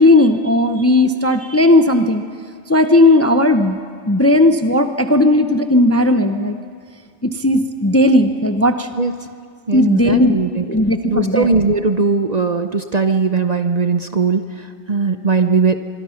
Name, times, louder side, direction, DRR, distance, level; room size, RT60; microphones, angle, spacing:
voice 1, 0.0-2.2 2.7-3.8 4.1-6.6 7.2-8.9 9.7-10.4 10.7-11.5, left 1 dB, 15° left, 8 dB, 0.6 m, -15 dB
voice 2, 9.7-10.6 11.0-15.8, right 4 dB, 40° right, 8 dB, 0.7 m, -19 dB
24.0 x 24.0 x 5.8 m, 2.2 s
omnidirectional pair, 1.2 m